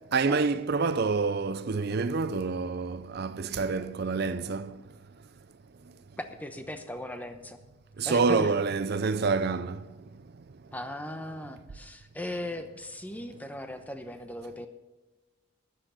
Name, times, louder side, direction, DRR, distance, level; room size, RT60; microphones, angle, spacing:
voice 1, 0.1-4.8 8.0-9.8, right 4 dB, 50° right, 0.5 m, -27 dB
voice 2, 6.2-7.6 8.0-8.5 10.7-14.7, left 1 dB, 10° left, 0.9 m, -38 dB
13.0 x 10.5 x 5.7 m
head